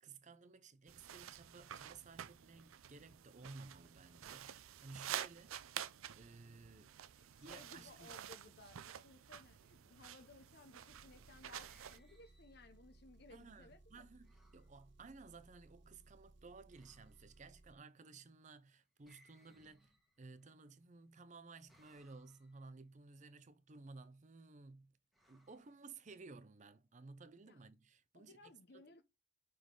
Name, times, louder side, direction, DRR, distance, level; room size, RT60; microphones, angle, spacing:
voice 1, 0.0-5.6 6.1-6.9 7.4-8.1 13.3-25.0 25.3-28.8, right 3 dB, 35° right, 0.6 m, -56 dB
sound 1, 0.9-12.0, right 10 dB, 85° right, 0.5 m, -50 dB
voice 2, 7.1-14.0 27.4-27.6 28.1-29.0, left 2 dB, 50° left, 0.7 m, -60 dB
Engine, 10.9-17.8, right 2 dB, 60° right, 1.1 m, -64 dB
sound 2, 11.2-13.0 14.2-14.7 16.7-17.4 19.0-20.5 21.7-22.7 25.1-26.3, equal, ahead, 1.3 m, -72 dB
5.7 x 5.1 x 3.8 m
head